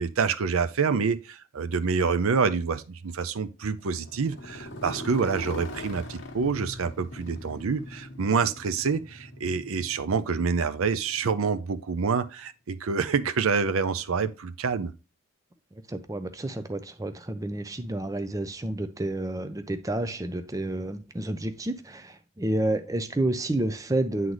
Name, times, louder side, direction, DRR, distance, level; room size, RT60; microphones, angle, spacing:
voice 1, 0.0-14.9, right 5 dB, 80° right, 0.5 m, -27 dB
Motorcycle, 3.8-11.8, left 1 dB, 55° left, 1.1 m, -41 dB
voice 2, 15.9-24.3, right 1 dB, 15° right, 0.5 m, -30 dB
9.2 x 3.9 x 3.0 m
head